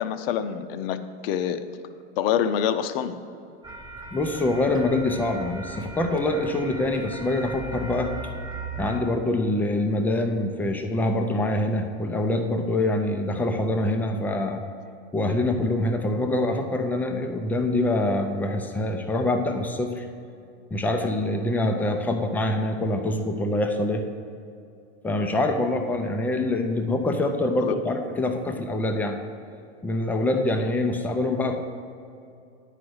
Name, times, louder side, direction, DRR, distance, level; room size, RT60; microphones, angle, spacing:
voice 1, 0.0-1.6 2.2-3.1 27.6-27.8, left 9 dB, 55° left, 10 dB, 0.7 m, -26 dB
sound 1, 3.6-9.0, right 3 dB, 10° right, 0.8 m, -38 dB
voice 2, 4.1-8.1 8.8-14.6 15.1-20.0 20.7-24.0 25.0-29.2 29.8-31.6, left 2 dB, 5° left, 4 dB, 0.4 m, -25 dB
9.8 x 5.0 x 6.2 m, 2.5 s
hypercardioid pair, 125°, 36 cm